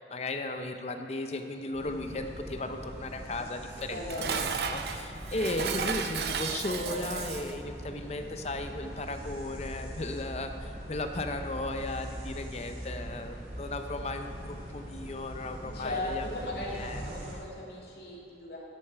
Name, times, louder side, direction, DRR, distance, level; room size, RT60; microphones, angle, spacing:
voice 1, 0.1-4.0 4.3-16.3 16.7-17.0, left 2 dB, 35° left, 6 dB, 0.6 m, -36 dB
sound 1, 1.7-17.3, equal, 40° right, 2.3 m, -42 dB
Dishes pots and pans, 3.8-7.6, right 6 dB, 65° right, 0.5 m, -34 dB
voice 2, 3.9-4.3 15.6-18.6, left 2 dB, 60° left, -4 dB, 2.3 m, -37 dB
9.9 x 9.6 x 4.5 m, 3.0 s
head